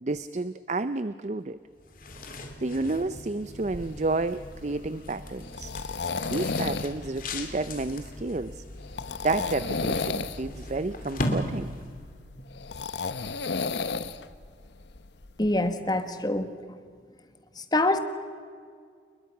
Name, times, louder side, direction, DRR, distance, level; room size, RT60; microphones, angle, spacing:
voice 1, 0.0-1.6 2.6-5.7 6.3-8.6 9.2-11.7, right 3 dB, 40° right, 13 dB, 0.5 m, -30 dB
sound 1, 1.8-12.1, left 1 dB, 50° left, 2.8 m, -37 dB
sound 2, 3.6-15.7, left 4 dB, 75° left, 0.9 m, -34 dB
voice 2, 15.4-16.5 17.6-18.0, left 2 dB, 20° left, 8 dB, 1.5 m, -25 dB
30.0 x 21.5 x 6.0 m, 2.1 s
head